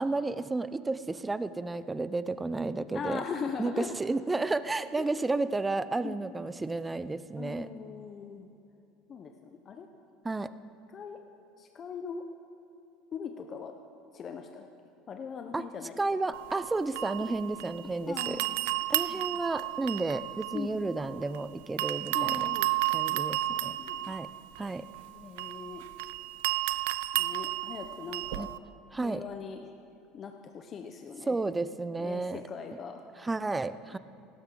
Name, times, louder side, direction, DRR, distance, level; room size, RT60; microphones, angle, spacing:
voice 1, 0.0-3.2 3.6-7.7 10.2-10.5 15.5-15.7 16.0-18.4 18.9-22.5 22.9-23.8 24.1-24.3 24.6-24.8 28.3-28.5 28.9-29.2 31.3-32.4 33.2-34.0, right 3 dB, 15° right, 14 dB, 0.4 m, -32 dB
voice 2, 2.9-3.9 5.0-5.1 6.0-6.2 7.4-8.5 9.1-9.9 10.9-11.2 11.6-12.2 13.1-13.7 14.1-14.7 15.1-16.0 18.1-18.5 19.1-19.2 20.5-20.9 22.1-22.7 23.5-24.1 25.1-25.8 27.1-28.5 29.0-29.6 30.1-31.4 32.0-33.1 33.9-34.0, left 6 dB, 35° left, 5 dB, 0.7 m, -40 dB
sound 1, 16.3-17.8 18.2-21.4 21.8-28.6, right 17 dB, 80° right, 0.3 m, -32 dB
17.0 x 12.5 x 3.8 m, 2.8 s
supercardioid pair, 115°, 0 cm